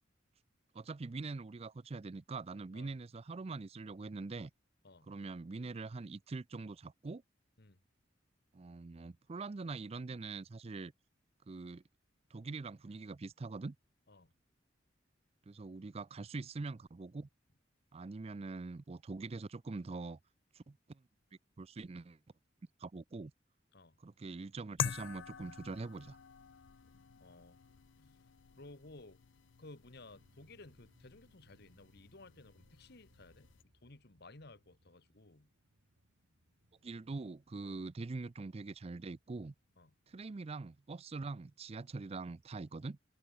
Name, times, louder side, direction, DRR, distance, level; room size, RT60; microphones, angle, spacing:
voice 1, 0.7-4.5 5.1-7.2 8.5-10.9 11.5-11.8 12.3-13.8 15.5-17.3 17.9-20.2 20.5-21.0 21.6-22.2 22.8-23.3 24.0-26.2 36.8-39.5 40.1-43.0, right 3 dB, 30° right, 0.4 m, -43 dB
sound 1, 24.8-33.6, left 7 dB, 80° left, 0.6 m, -46 dB
voice 2, 27.2-27.6 28.0-28.2 28.5-29.2 29.6-33.5 33.8-35.5 37.6-37.9 39.8-39.9, left 2 dB, 60° left, 1.9 m, -56 dB
sound 2, 29.9-40.5, equal, 70° right, 6.9 m, -72 dB
head